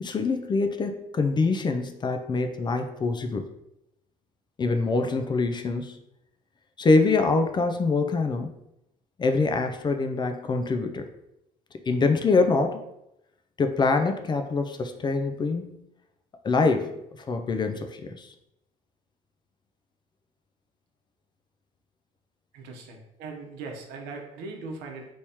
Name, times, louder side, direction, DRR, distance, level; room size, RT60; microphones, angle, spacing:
voice 1, 0.0-3.5 4.6-6.0 6.8-8.5 9.2-11.1 11.9-12.8 13.6-15.8 16.4-16.9 17.3-18.3, left 3 dB, 25° left, 6 dB, 0.4 m, -24 dB
voice 2, 22.5-25.1, right 3 dB, 90° right, 1 dB, 0.8 m, -39 dB
3.4 x 3.0 x 2.8 m, 0.83 s
cardioid pair, 110°, 17 cm